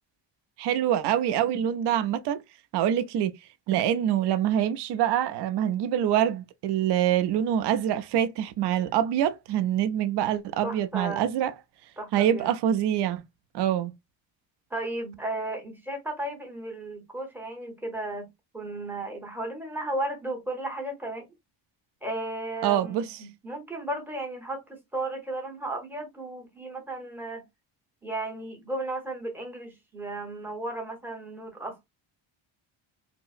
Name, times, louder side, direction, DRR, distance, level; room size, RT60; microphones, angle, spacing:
voice 1, 0.6-2.4 2.7-3.3 3.7-11.5 12.1-13.2 13.5-13.9 22.6-23.0, right 10 dB, 55° right, 0.5 m, -25 dB
voice 2, 10.6-11.3 12.0-12.5 14.7-18.3 18.5-21.3 22.0-27.4 28.0-31.8, right 2 dB, 5° right, 0.8 m, -34 dB
4.4 x 2.0 x 2.4 m
cardioid pair, 175°, 48 cm